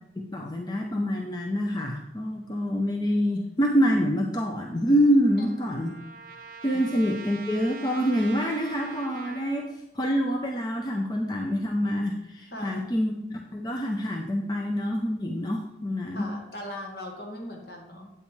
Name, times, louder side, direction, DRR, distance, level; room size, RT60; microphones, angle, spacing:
voice 1, 0.2-5.9 6.6-16.3, equal, 25° left, 2 dB, 0.5 m, -26 dB
Trumpet, 4.6-9.7, right 4 dB, 50° right, 0.7 m, -44 dB
voice 2, 5.4-5.9 6.7-7.1 12.5-12.9 16.1-18.1, left 1 dB, 60° left, 0 dB, 1.7 m, -40 dB
8.4 x 8.4 x 3.2 m, 0.87 s
head